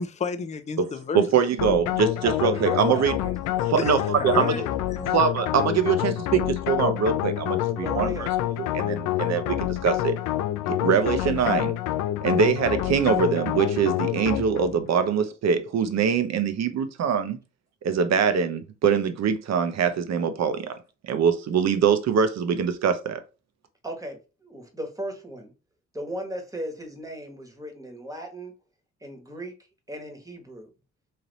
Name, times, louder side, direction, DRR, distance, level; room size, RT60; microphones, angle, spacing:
voice 1, 0.0-1.3 1.6-1.7 3.8-5.2, left 5 dB, 25° left, 0.5 m, -32 dB
voice 2, 1.1-3.1 3.7-4.6 5.1-8.3 8.6-10.2 10.7-11.7 12.2-17.4 17.8-20.7 21.0-23.2, right 6 dB, 60° right, 0.8 m, -23 dB
sound 1, 1.6-14.8, left 14 dB, 85° left, 0.5 m, -27 dB
voice 3, 2.1-3.7 4.2-4.5 7.8-8.3 23.8-25.5 25.9-28.5 29.0-29.5 29.9-30.7, right 1 dB, 10° right, 1.3 m, -36 dB
3.3 x 2.8 x 4.0 m
cardioid pair, 90°, 30 cm